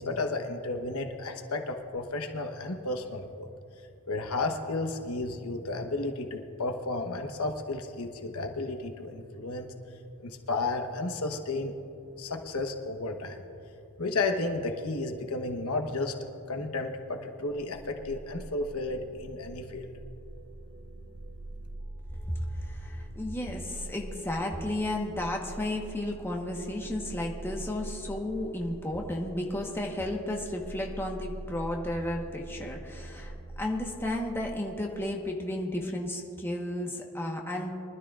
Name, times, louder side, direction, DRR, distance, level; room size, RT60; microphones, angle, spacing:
voice 1, 0.0-3.5 4.1-9.7 10.2-11.7 12.2-13.4 14.0-16.1 16.5-19.9, left 2 dB, 80° left, 5 dB, 1.1 m, -33 dB
sound 1, 17.5-34.6, right 1 dB, 70° right, 0.9 m, -44 dB
voice 2, 22.7-37.8, left 1 dB, 10° left, 0 dB, 1.1 m, -33 dB
23.5 x 12.5 x 2.4 m, 2.7 s
head